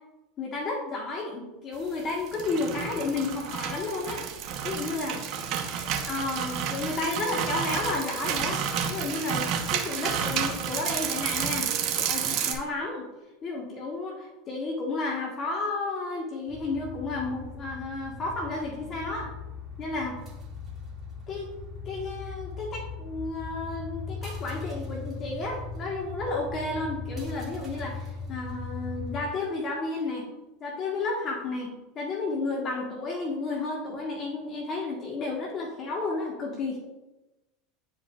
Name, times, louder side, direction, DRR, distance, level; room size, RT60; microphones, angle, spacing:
voice 1, 0.4-4.3 4.6-5.2 6.1-8.6 8.9-13.0 13.4-19.3 19.8-20.2 21.3-21.5 21.8-30.3 30.6-36.8, left 3 dB, 40° left, -1 dB, 1.4 m, -32 dB
sound 1, 2.1-12.5, right 7 dB, 55° right, 1.0 m, -30 dB
sound 2, 16.5-29.2, left 4 dB, 20° right, 2.2 m, -39 dB
9.6 x 4.9 x 2.4 m, 1.0 s
hypercardioid pair, 90°, 0 cm